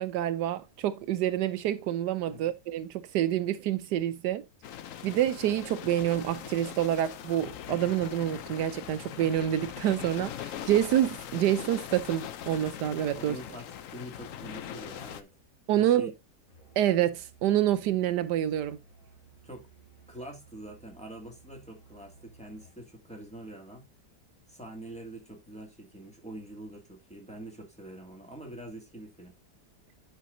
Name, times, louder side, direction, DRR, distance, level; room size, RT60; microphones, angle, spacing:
voice 1, 0.0-4.4 5.0-13.4 15.7-16.1 16.8-18.8, right 12 dB, 80° right, 1.2 m, -27 dB
sound 1, 4.6-15.2, left 10 dB, 60° left, 0.9 m, -41 dB
voice 2, 13.2-15.3 15.8-16.1 19.4-19.7 20.1-23.9 24.5-29.3, right 1 dB, 5° left, 2.1 m, -45 dB
Musical instrument, 16.5-22.9, right 5 dB, 25° left, 1.9 m, -57 dB
10.0 x 6.1 x 2.7 m
omnidirectional pair, 1.8 m